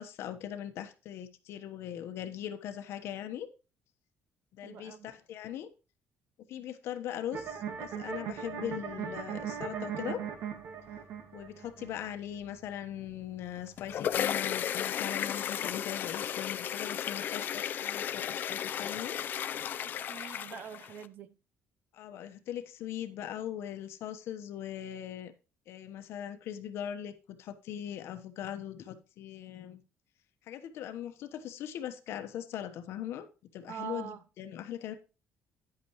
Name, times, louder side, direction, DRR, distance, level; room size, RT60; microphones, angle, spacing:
voice 1, 0.0-3.5 4.5-5.7 6.5-10.2 11.3-19.2 21.9-25.3 25.7-29.8 30.5-33.3 33.5-34.9, left 10 dB, 70° left, 1.1 m, -40 dB
voice 2, 4.6-5.1 19.8-21.4 33.7-34.2, right 9 dB, 50° right, 0.8 m, -44 dB
sound 1, 7.3-14.3, right 7 dB, 75° right, 1.8 m, -40 dB
sound 2, 13.6-21.0, left 9 dB, 45° left, 0.5 m, -34 dB
10.5 x 8.7 x 3.1 m
cardioid pair, 165°, 5 cm